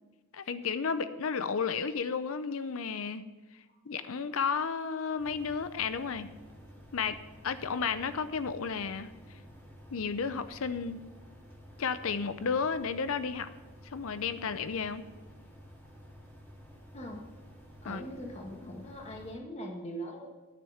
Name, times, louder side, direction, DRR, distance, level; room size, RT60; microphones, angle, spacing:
voice 1, 0.3-3.2 3.9-6.3 6.9-7.2 7.4-9.1 9.9-11.0 11.8-13.5 13.9-15.0 17.8-18.0, left 5 dB, 65° left, 12 dB, 0.6 m, -32 dB
sound 1, 5.1-19.4, equal, 10° left, 2.0 m, -52 dB
voice 2, 17.8-20.3, equal, 30° left, 1 dB, 1.6 m, -41 dB
10.5 x 6.5 x 7.1 m, 1.2 s
head